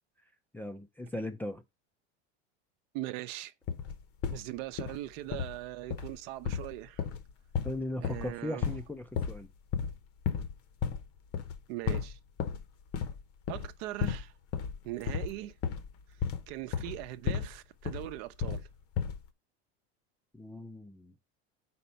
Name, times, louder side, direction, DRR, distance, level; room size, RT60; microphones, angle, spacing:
voice 1, 0.5-1.6 7.6-9.5 20.3-21.1, left 1 dB, 5° left, 0.4 m, -38 dB
voice 2, 2.9-3.5 4.3-7.1 8.0-8.7 11.7-12.2 13.5-14.3 14.8-15.5 16.5-18.7, right 16 dB, 65° right, 0.7 m, -40 dB
sound 1, 3.7-4.4 4.8-5.0 5.3-5.6 5.9-6.2 6.4-8.3 8.6-8.8 9.1-9.4 9.7-10.0 10.2-10.5 10.8-11.1 11.3-11.6 11.9-12.6 12.9-13.2 13.5-13.7 14.0-14.3 14.5-17.6 17.8-18.7 19.0-19.3, left 7 dB, 45° left, 0.8 m, -33 dB
4.3 x 4.2 x 5.6 m
supercardioid pair, 120°, 33 cm